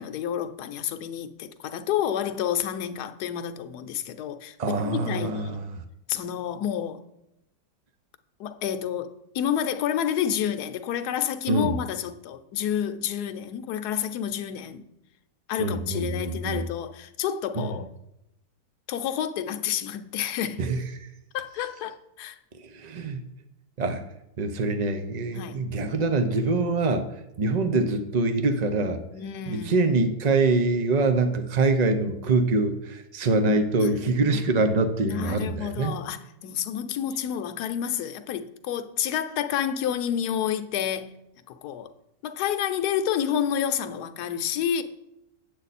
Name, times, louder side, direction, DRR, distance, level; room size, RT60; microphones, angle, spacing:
voice 1, 0.0-5.6 6.1-7.0 8.4-14.9 15.5-17.9 18.9-20.6 21.3-22.4 25.3-25.7 29.1-29.9 33.8-34.5 35.0-41.2 41.5-41.9 42.2-44.8, left 9 dB, 70° left, 1.2 m, -29 dB
voice 2, 4.6-5.8 11.5-11.7 15.6-16.6 17.5-17.7 20.6-20.8 22.6-23.2 23.8-24.0 24.4-27.1 27.4-29.0 29.5-35.9, right 3 dB, 85° right, 0.3 m, -24 dB
8.7 x 7.9 x 4.1 m
omnidirectional pair, 1.8 m